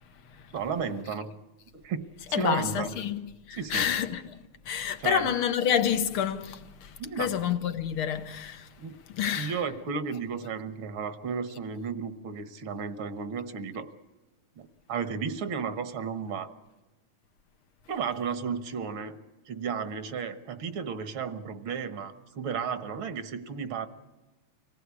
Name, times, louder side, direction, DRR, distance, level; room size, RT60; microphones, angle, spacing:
voice 1, 0.5-1.3 1.7-2.9 3.6-3.8 5.0-5.3 7.0-7.3 8.8-9.0 9.4-13.9 14.6-16.5 17.9-19.2 19.5-23.9, right 6 dB, 70° right, 2.0 m, -33 dB
voice 2, 2.3-8.7 9.1-9.6, left 9 dB, 80° left, 2.0 m, -29 dB
25.5 x 18.0 x 8.4 m
omnidirectional pair, 2.4 m